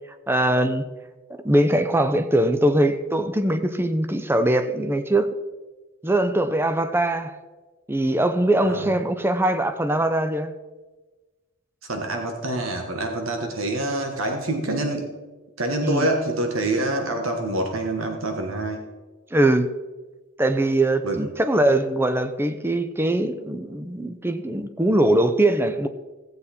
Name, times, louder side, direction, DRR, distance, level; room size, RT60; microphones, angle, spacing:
voice 1, 0.3-0.9 1.3-5.4 6.0-7.4 7.9-10.5 15.8-16.1 19.3-19.7 20.4-25.9, right 1 dB, 10° right, 0.6 m, -21 dB
voice 2, 8.6-8.9 11.9-15.1 15.6-18.8 21.0-21.2, right 1 dB, 75° right, 1.3 m, -26 dB
16.0 x 8.2 x 4.2 m
head